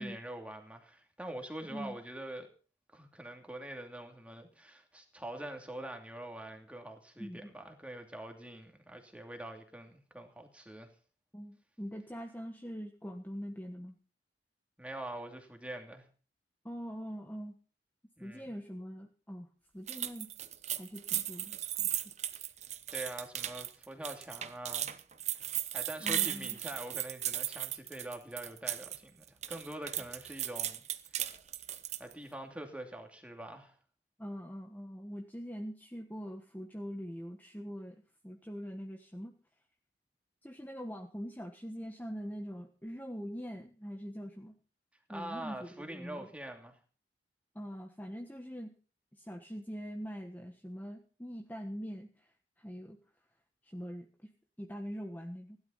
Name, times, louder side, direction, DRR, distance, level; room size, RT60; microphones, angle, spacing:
voice 1, 0.0-2.5 2.9-10.9 14.8-16.0 18.2-18.5 22.9-24.9 25.7-31.3 32.0-33.8 45.1-46.7, right 1 dB, 5° right, 4 dB, 2.7 m, -44 dB
voice 2, 7.2-7.5 11.3-14.0 16.6-17.5 18.2-20.3 20.7-22.0 22.3-22.5 26.0-26.5 34.2-38.0 38.2-39.3 40.4-44.5 45.1-46.3 47.5-48.7 49.1-52.3 52.6-53.0 53.6-54.3 54.6-55.6, equal, 10° left, 2 dB, 1.4 m, -43 dB
sound 1, 19.9-29.0 29.3-32.1, right 12 dB, 40° right, 1.0 m, -36 dB
17.0 x 12.0 x 5.8 m, 0.38 s
head